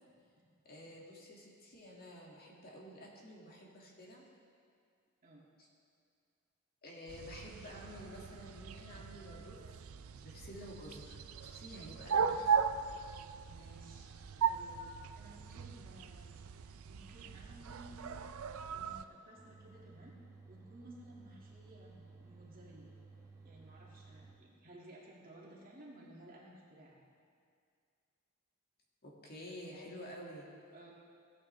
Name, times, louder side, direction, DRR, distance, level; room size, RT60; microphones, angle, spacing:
voice 1, 0.7-4.2 5.6-5.7 6.8-9.7 10.2-12.7 29.0-30.5, equal, 45° left, -3 dB, 1.9 m, -50 dB
sound 1, 7.1-19.0, right 6 dB, 70° right, 0.4 m, -38 dB
voice 2, 13.5-14.1 14.4-18.3 18.7-20.2 20.5-22.9 23.4-27.0 29.4-29.8 30.7-30.9, right 1 dB, 40° right, -4 dB, 2.0 m, -56 dB
sound 2, 19.4-24.3, right 4 dB, 15° right, 1.0 m, -56 dB
17.0 x 8.8 x 3.2 m, 2.2 s
head